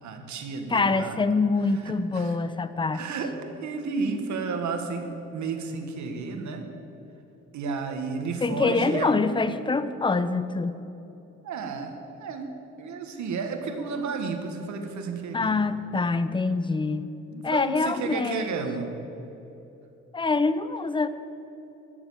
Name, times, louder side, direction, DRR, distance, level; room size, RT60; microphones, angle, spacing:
voice 1, 0.0-1.2 1.8-2.4 2.9-6.6 7.5-9.1 11.4-12.5 12.8-15.6 17.2-18.9, right 4 dB, 70° right, 5 dB, 1.6 m, -32 dB
voice 2, 0.7-3.0 8.4-10.8 15.3-17.1 17.4-18.4 20.1-21.1, left 3 dB, 15° left, 13 dB, 0.6 m, -25 dB
13.5 x 7.1 x 7.3 m, 3.0 s
cardioid pair, 90°, 30 cm